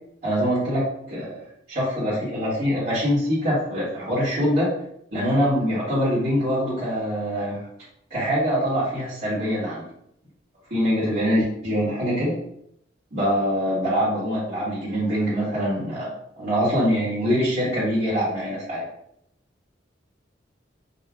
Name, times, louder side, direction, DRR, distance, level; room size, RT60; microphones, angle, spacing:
voice 1, 0.2-1.4 1.7-4.7 5.1-7.6 8.1-9.8 10.7-12.3 13.1-18.8, equal, 55° right, -9 dB, 1.4 m, -24 dB
5.4 x 2.2 x 2.4 m, 0.73 s
head